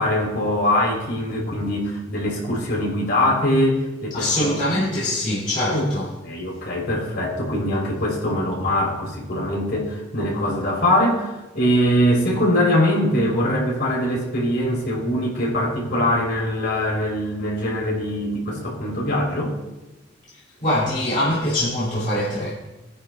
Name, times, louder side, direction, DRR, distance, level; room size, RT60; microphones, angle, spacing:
voice 1, 0.0-4.7 5.7-5.9 6.2-19.5, left 1 dB, 60° left, 3.6 m, -22 dB
voice 2, 4.1-6.1 20.6-22.5, left 1 dB, 45° left, 2.4 m, -23 dB
19.5 x 10.0 x 2.3 m
head